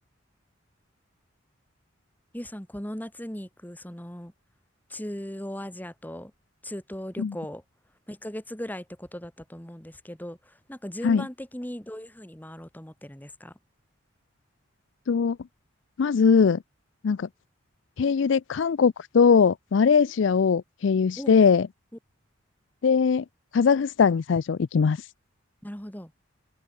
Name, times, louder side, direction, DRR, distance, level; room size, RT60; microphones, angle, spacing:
voice 1, 2.3-4.3 4.9-6.3 6.6-7.6 8.1-13.5 20.0-20.1 21.2-21.3 25.6-26.1, equal, 10° left, 2.3 m, -38 dB
voice 2, 16.0-16.6 17.0-17.3 18.0-21.7 22.8-23.2 23.5-25.0, left 6 dB, 65° left, 0.4 m, -21 dB
head